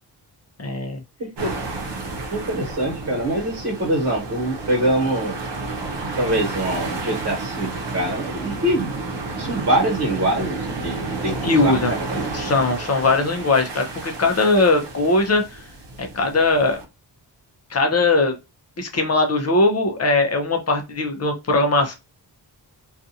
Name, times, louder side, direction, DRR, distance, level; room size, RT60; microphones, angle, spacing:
voice 1, 0.6-1.0 11.4-11.9 12.3-15.6 16.0-16.8 17.7-18.4 18.8-21.9, left 2 dB, 35° left, 5 dB, 0.6 m, -20 dB
voice 2, 1.2-1.5 2.3-5.4 6.2-8.9 9.4-11.8 12.1-12.2, right 1 dB, 40° right, -2 dB, 1.2 m, -24 dB
sound 1, 1.4-16.8, right 3 dB, 70° right, 0.8 m, -31 dB
2.4 x 2.4 x 2.7 m, 0.25 s
wide cardioid pair, 155°, 43 cm